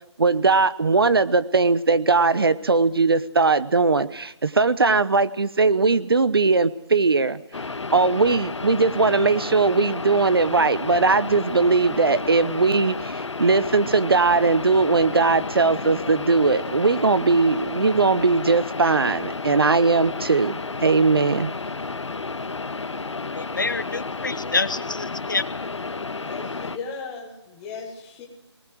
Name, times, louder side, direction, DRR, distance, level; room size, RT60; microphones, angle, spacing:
voice 1, 0.2-7.4 7.9-21.5, right 4 dB, 55° right, 16 dB, 0.9 m, -20 dB
sound 1, 7.5-26.8, left 4 dB, 80° left, 1.4 m, -32 dB
voice 2, 23.4-25.4, left 3 dB, 45° left, 17 dB, 0.7 m, -27 dB
voice 3, 26.2-28.3, left 5 dB, 5° left, 2 dB, 1.1 m, -36 dB
19.5 x 19.5 x 7.8 m, 0.87 s
hypercardioid pair, 180°, 15 cm